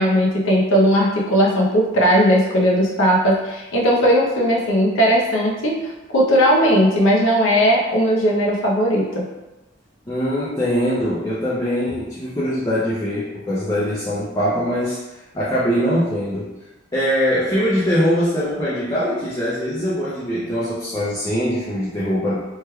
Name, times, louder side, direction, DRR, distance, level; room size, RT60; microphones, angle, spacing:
voice 1, 0.0-9.2, equal, 85° left, -2 dB, 0.7 m, -17 dB
voice 2, 10.1-15.0 15.3-16.5 16.9-22.4, equal, 20° left, -9 dB, 0.5 m, -22 dB
3.1 x 3.1 x 2.2 m, 1.0 s
head